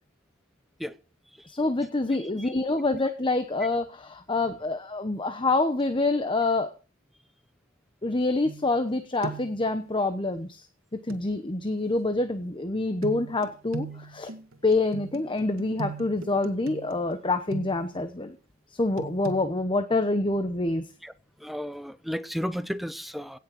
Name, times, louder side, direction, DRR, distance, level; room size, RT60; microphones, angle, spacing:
voice 1, 1.5-6.7 8.0-10.6 11.1-13.9 14.1-14.3 14.6-18.4 18.8-20.8, left 2 dB, 25° left, 0.9 m, -26 dB
voice 2, 2.0-2.6 2.9-3.0 13.9-14.0 21.0-21.1 21.4-23.4, equal, ahead, 0.7 m, -34 dB
sound 1, 8.4-8.9 9.2-9.6 11.1-11.2 13.0-18.0 19.0-19.4, right 3 dB, 80° right, 1.9 m, -38 dB
17.0 x 6.5 x 7.6 m
head